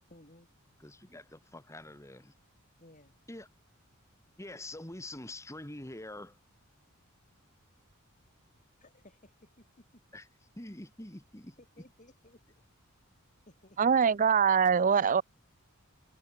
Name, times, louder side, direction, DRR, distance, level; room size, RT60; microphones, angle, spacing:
voice 1, 0.1-0.5 2.8-3.2 8.8-10.0 11.6-12.6 13.5-14.0, left 1 dB, 35° left, 7.3 m, -58 dB
voice 2, 0.8-2.3 3.3-3.5 4.4-6.4 10.1-10.3 10.6-11.6, left 1 dB, 15° left, 1.9 m, -45 dB
voice 3, 13.8-15.2, right 6 dB, 35° right, 0.4 m, -23 dB
head